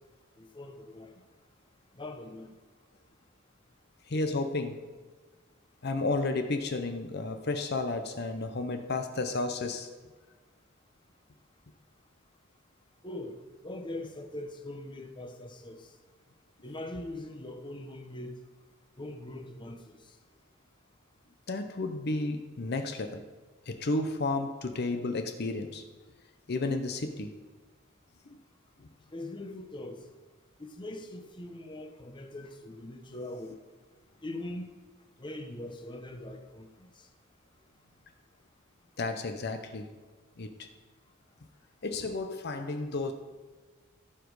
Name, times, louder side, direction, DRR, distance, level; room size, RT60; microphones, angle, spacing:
voice 1, 0.4-1.1 2.0-2.5 13.0-13.4 13.6-15.8 16.6-18.4 19.0-19.8 29.1-30.0 30.6-33.6 34.2-34.7 35.2-36.9, left 1 dB, 25° left, 0.8 m, -41 dB
voice 2, 4.1-4.8 5.8-9.9 21.5-23.2 23.7-25.8 26.5-27.4 28.3-28.4 39.0-39.9 40.4-40.7 41.8-43.1, left 2 dB, 50° left, 0.7 m, -32 dB
15.5 x 5.1 x 4.8 m
head